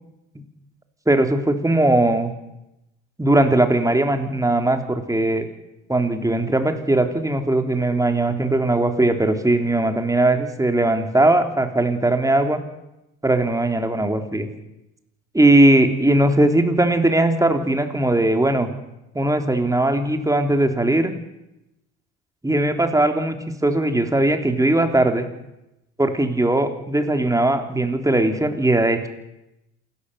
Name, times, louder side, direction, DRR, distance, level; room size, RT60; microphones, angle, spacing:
voice 1, 1.1-2.3 3.2-5.5 5.9-12.6 13.2-14.5 15.3-18.7 19.1-21.1 22.4-25.3 26.0-29.1, right 1 dB, 10° right, 5 dB, 3.7 m, -19 dB
27.5 x 13.5 x 8.2 m, 0.91 s
hypercardioid pair, 65°, 36 cm